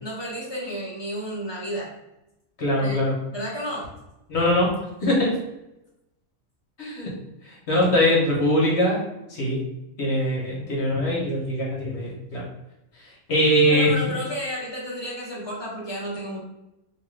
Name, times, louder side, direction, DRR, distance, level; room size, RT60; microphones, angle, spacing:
voice 1, 0.0-1.9 2.8-3.0 3.3-3.9 13.7-16.4, equal, 30° left, -6 dB, 0.5 m, -32 dB
voice 2, 2.6-3.1 4.3-4.7 5.0-5.3 6.8-7.1 7.5-9.0 9.3-9.6 10.0-12.4 13.3-14.0, equal, 55° left, -4 dB, 1.1 m, -22 dB
2.9 x 2.4 x 3.1 m, 0.91 s
omnidirectional pair, 1.6 m